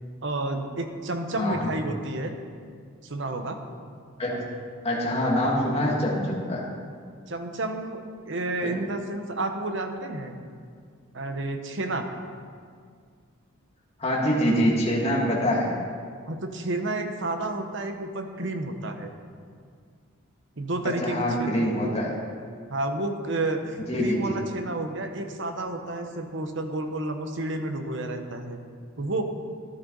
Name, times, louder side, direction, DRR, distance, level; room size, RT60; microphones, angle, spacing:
voice 1, 0.2-2.3 3.0-3.6 7.3-10.4 11.1-12.1 16.3-19.1 20.6-21.7 22.7-28.6 29.0-29.2, right 2 dB, 60° right, 6 dB, 1.0 m, -30 dB
voice 2, 1.4-1.7 4.2-4.4 4.8-6.6 8.6-8.8 14.0-15.7 21.0-22.1 23.9-24.2, equal, 30° left, -4 dB, 2.0 m, -25 dB
14.0 x 11.5 x 4.0 m, 2.1 s
head